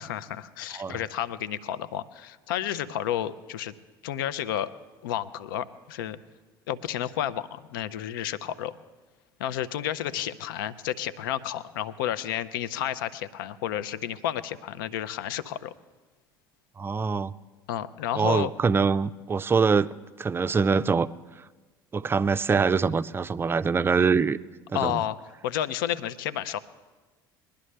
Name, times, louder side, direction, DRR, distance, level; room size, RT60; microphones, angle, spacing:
voice 1, 0.0-3.8 4.0-4.7 5.0-6.2 6.7-8.7 9.4-15.7 17.7-18.5 24.7-25.2 25.4-26.6, left 11 dB, 65° left, 15 dB, 0.6 m, -31 dB
voice 2, 16.8-17.3 18.2-19.9 20.2-21.1 21.9-24.4 24.7-24.9, right 5 dB, 20° right, 15 dB, 0.4 m, -24 dB
21.5 x 11.5 x 3.3 m, 1.3 s
figure-of-eight pair, 65°, 12 cm